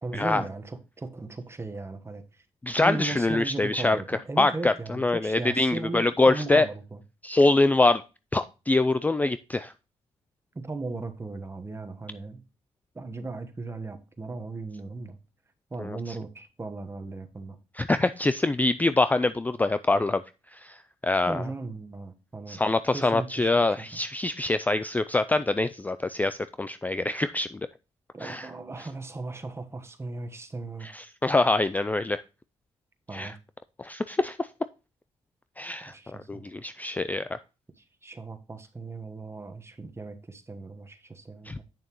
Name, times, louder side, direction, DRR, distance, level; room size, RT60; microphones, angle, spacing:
voice 1, 0.0-2.2 2.8-7.0 10.5-12.4 12.9-15.2 15.7-17.6 21.3-22.6 22.9-24.0 28.1-30.9 33.1-33.4 35.9-36.4 37.8-41.6, right 3 dB, 20° right, 1.2 m, -37 dB
voice 2, 2.6-4.0 4.4-6.7 7.2-8.0 8.3-9.7 15.8-16.1 17.8-20.2 20.5-20.8 21.0-21.4 22.5-27.6 28.2-28.5 30.8-32.2 33.1-33.3 33.8-34.5 35.6-35.9 36.3-37.3 41.5-41.6, left 2 dB, 15° left, 0.3 m, -24 dB
8.8 x 6.5 x 3.0 m
cardioid pair, 85°, 12 cm